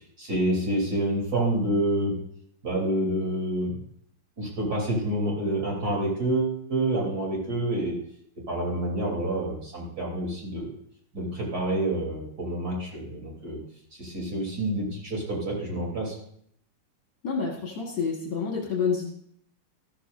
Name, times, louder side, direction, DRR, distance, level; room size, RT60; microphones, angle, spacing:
voice 1, 0.2-2.2 2.6-3.7 4.4-8.0 8.5-10.7 11.1-13.6 14.0-16.2, right 1 dB, 45° right, -3 dB, 3.8 m, -28 dB
voice 2, 17.2-19.1, left 5 dB, 55° left, -2 dB, 2.2 m, -28 dB
14.0 x 13.0 x 2.6 m, 0.68 s
omnidirectional pair, 2.4 m